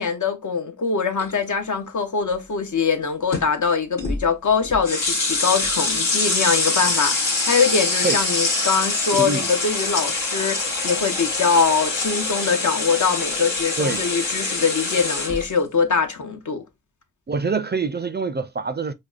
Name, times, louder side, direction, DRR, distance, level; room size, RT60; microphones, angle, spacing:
voice 1, 0.0-16.7, left 5 dB, 65° left, 0.7 m, -23 dB
sound 1, 1.2-1.5 3.3-3.4 4.0-4.2 4.6-15.5, left 3 dB, 90° left, 1.0 m, -24 dB
voice 2, 9.1-9.4 13.8-14.0 17.3-18.9, right 4 dB, 35° right, 0.4 m, -25 dB
5.0 x 2.1 x 2.3 m
cardioid pair, 50°, 32 cm